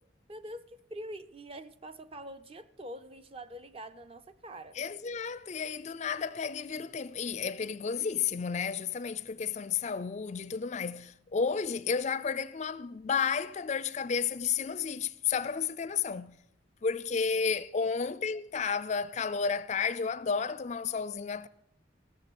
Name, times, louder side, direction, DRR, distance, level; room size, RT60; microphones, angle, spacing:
voice 1, 0.3-4.8 17.3-17.9, right 1 dB, 30° right, 0.6 m, -45 dB
voice 2, 4.8-16.4 16.8-21.5, left 6 dB, 35° left, 0.4 m, -32 dB
15.5 x 6.7 x 8.4 m
head